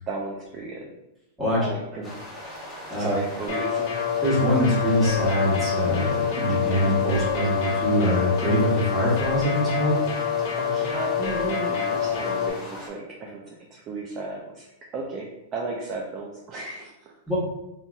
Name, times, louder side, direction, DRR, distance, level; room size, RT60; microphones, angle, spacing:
voice 1, 0.1-0.9 1.5-2.1 3.0-3.9 10.2-17.1, right 3 dB, 30° right, -2 dB, 0.4 m, -34 dB
sound 1, 2.0-12.9, left 1 dB, 10° left, 1.2 m, -40 dB
sound 2, 3.5-12.5, left 7 dB, 60° left, 1.0 m, -27 dB
voice 2, 4.2-10.0 17.3-17.4, equal, 5° right, -7 dB, 1.3 m, -23 dB
3.9 x 2.7 x 2.3 m, 0.91 s
supercardioid pair, 145°, 0 cm